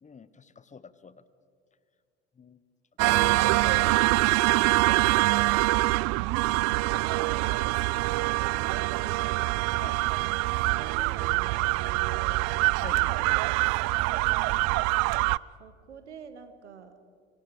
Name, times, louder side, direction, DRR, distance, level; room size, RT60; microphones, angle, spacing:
voice 1, 0.0-1.2 2.4-2.6 3.1-4.2 9.8-10.0 12.8-13.3, left 5 dB, 20° left, 16 dB, 0.9 m, -46 dB
sound 1, 3.0-15.4, right 22 dB, 50° right, 0.4 m, -25 dB
voice 2, 4.8-7.6 7.8-9.6 10.7-12.5 15.6-16.9, right 6 dB, 85° right, 11 dB, 1.4 m, -47 dB
25.0 x 23.0 x 4.9 m, 2.2 s
hypercardioid pair, 65°, 34 cm